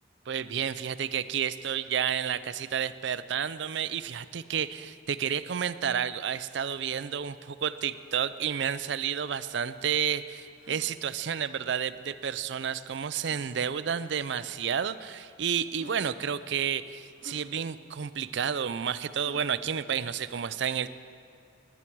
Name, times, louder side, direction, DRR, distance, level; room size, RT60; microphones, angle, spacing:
voice 1, 0.3-20.9, right 8 dB, 70° right, 14 dB, 0.4 m, -31 dB
sound 1, 10.6-10.9 12.2-12.3 13.2-13.5 14.5-14.6 15.3-15.4 15.7-16.0 17.2-17.4 19.2-19.5, left 2 dB, 75° left, 2.1 m, -50 dB
19.5 x 9.8 x 4.6 m, 2.5 s
head